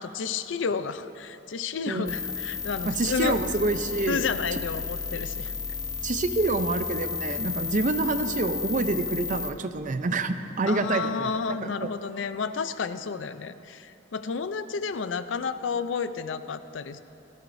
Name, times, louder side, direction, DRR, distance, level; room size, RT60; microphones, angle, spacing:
voice 1, 0.0-3.4 4.1-5.5 10.7-17.0, left 5 dB, 80° left, 12 dB, 0.5 m, -31 dB
sound 1, 2.1-9.5, left 5 dB, 20° left, 0.7 m, -33 dB
voice 2, 2.9-4.2 6.0-11.3 11.6-11.9, right 3 dB, 45° right, 9 dB, 0.6 m, -27 dB
18.5 x 14.0 x 2.6 m, 2.7 s
head